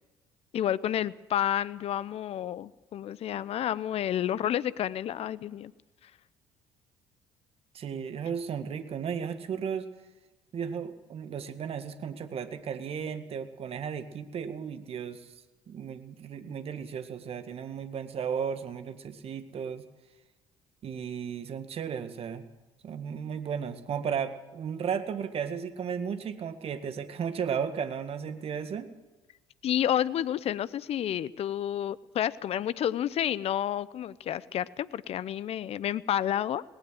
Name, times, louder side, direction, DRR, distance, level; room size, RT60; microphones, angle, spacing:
voice 1, 0.5-5.7 29.6-36.6, left 11 dB, 50° left, 18 dB, 0.7 m, -30 dB
voice 2, 7.7-9.9 10.5-15.3 15.7-19.8 20.8-22.4 22.8-28.9, right 7 dB, 50° right, 9 dB, 1.9 m, -34 dB
19.0 x 18.0 x 7.7 m, 1.1 s
hypercardioid pair, 60°, 13 cm